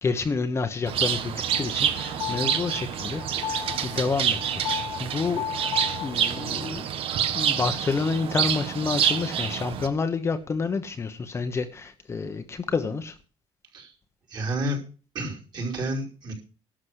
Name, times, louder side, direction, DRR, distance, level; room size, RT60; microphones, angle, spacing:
voice 1, 0.0-5.4 6.0-6.8 7.3-13.2, left 4 dB, 25° left, 7 dB, 1.0 m, -29 dB
Bird, 0.9-9.9, right 9 dB, 65° right, 1.3 m, -27 dB
sound 1, 1.5-6.6, left 10 dB, 60° left, 1.8 m, -35 dB
voice 2, 14.3-14.8 15.1-16.3, right 1 dB, 40° right, -1 dB, 5.2 m, -30 dB
12.0 x 6.4 x 8.1 m, 0.36 s
cardioid pair, 155°, 10 cm